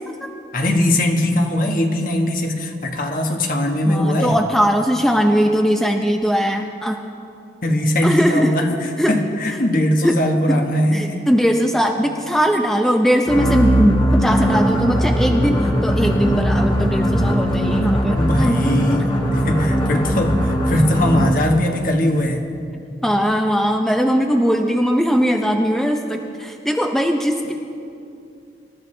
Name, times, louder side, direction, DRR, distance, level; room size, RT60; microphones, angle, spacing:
voice 1, 0.5-4.4 7.6-11.2 18.2-22.5, left 1 dB, 50° left, 3 dB, 1.4 m, -20 dB
voice 2, 3.8-7.0 8.0-8.5 9.0-9.2 10.0-10.2 10.5-10.6 10.9-18.6 23.0-27.5, equal, ahead, 3 dB, 0.6 m, -19 dB
sound 1, 13.3-21.5, equal, 25° left, 1.4 m, -19 dB
26.5 x 13.5 x 3.3 m, 2.6 s
head